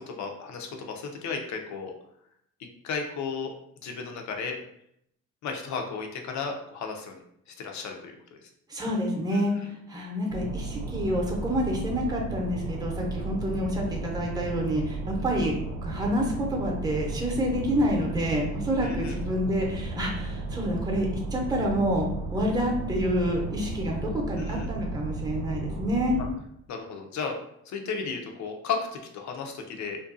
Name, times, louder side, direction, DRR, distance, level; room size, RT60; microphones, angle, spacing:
voice 1, 0.0-1.9 2.8-3.5 3.8-4.6 5.4-7.2 7.6-8.1 9.3-9.4 18.8-19.2 24.4-24.7 26.7-27.4 27.7-30.0, left 5 dB, 70° left, 3 dB, 0.6 m, -34 dB
voice 2, 8.7-15.5 15.8-26.2, equal, 15° right, -1 dB, 0.7 m, -28 dB
sound 1, 10.3-26.3, right 3 dB, 90° right, 0.5 m, -34 dB
2.5 x 2.2 x 2.5 m, 0.74 s
cardioid pair, 90°, 30 cm